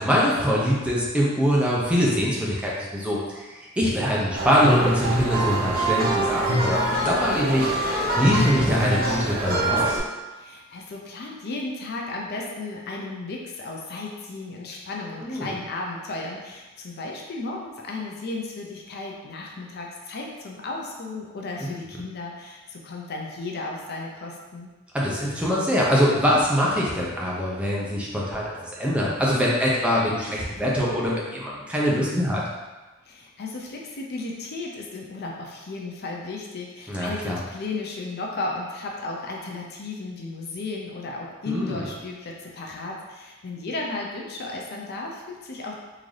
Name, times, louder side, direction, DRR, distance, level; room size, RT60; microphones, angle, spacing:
voice 1, 0.0-10.0 15.2-15.5 21.6-21.8 24.9-32.4 36.9-37.4 41.5-41.9, equal, 5° right, -5 dB, 0.6 m, -23 dB
sound 1, 4.3-10.0, right 1 dB, 45° right, 0.7 m, -24 dB
voice 2, 10.3-24.7 33.0-45.7, left 2 dB, 50° left, -1 dB, 0.5 m, -34 dB
3.8 x 2.6 x 3.2 m, 1.2 s
head